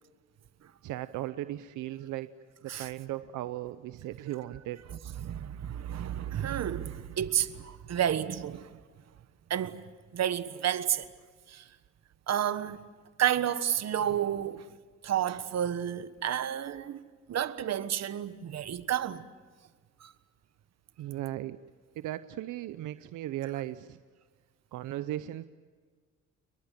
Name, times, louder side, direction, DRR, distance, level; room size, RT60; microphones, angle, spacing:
voice 1, 0.8-2.3 2.6-4.9 5.8-5.9 21.0-21.6 22.0-24.0 24.7-25.5, right 14 dB, 85° right, 0.8 m, -37 dB
voice 2, 5.2-8.8 9.5-9.8 10.1-11.1 11.5-11.7 12.3-12.8 13.2-14.7 15.0-19.3 20.0-20.1, right 10 dB, 60° right, 1.4 m, -31 dB
30.0 x 22.5 x 7.5 m
cardioid pair, 90°, 30 cm